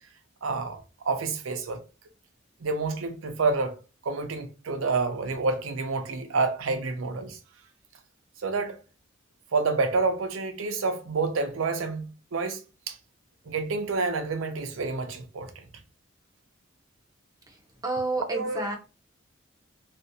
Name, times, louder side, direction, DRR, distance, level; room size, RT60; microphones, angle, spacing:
voice 1, 0.4-1.8 2.6-3.8 4.0-7.4 8.4-8.8 9.5-12.6 12.9-13.0 13.5-15.6 18.3-18.6, right 3 dB, 75° right, 0.5 m, -28 dB
voice 2, 17.8-18.8, right 2 dB, 20° right, 0.5 m, -29 dB
2.4 x 2.1 x 2.7 m
head